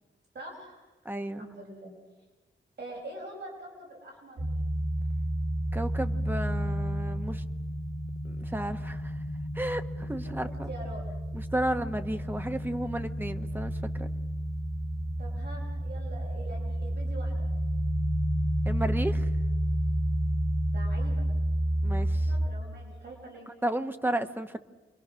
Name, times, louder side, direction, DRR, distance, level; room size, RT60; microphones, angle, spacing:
voice 1, 0.3-0.8 1.4-1.9 2.8-4.4 10.2-11.0 12.3-12.4 15.2-17.5 20.7-21.3 21.9-23.5, right 1 dB, 55° right, -1 dB, 4.9 m, -44 dB
voice 2, 1.0-1.5 5.7-7.4 8.2-9.1 9.5-10.7 11.3-14.1 18.6-19.3 21.8-22.3 23.6-24.6, right 1 dB, 10° right, 8 dB, 1.0 m, -33 dB
sound 1, 4.4-22.5, right 1 dB, 80° right, 2.2 m, -30 dB
29.0 x 22.5 x 6.2 m, 1.2 s
wide cardioid pair, 175°, 20 cm